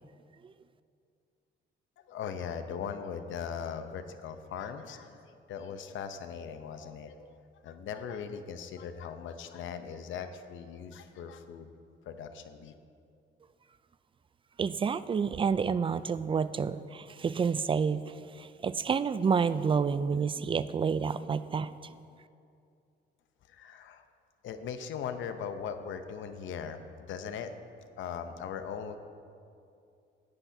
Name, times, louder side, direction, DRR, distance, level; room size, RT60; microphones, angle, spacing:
voice 1, 2.0-7.4 7.6-11.7 12.1-12.7 23.5-24.1 24.4-26.8 27.1-27.5 28.0-29.0, left 7 dB, 75° left, 8 dB, 0.8 m, -39 dB
voice 2, 14.6-18.0 18.4-21.7, right 6 dB, 25° right, 15 dB, 0.4 m, -29 dB
16.5 x 9.9 x 2.8 m, 2.5 s
cardioid pair, 90°, 20 cm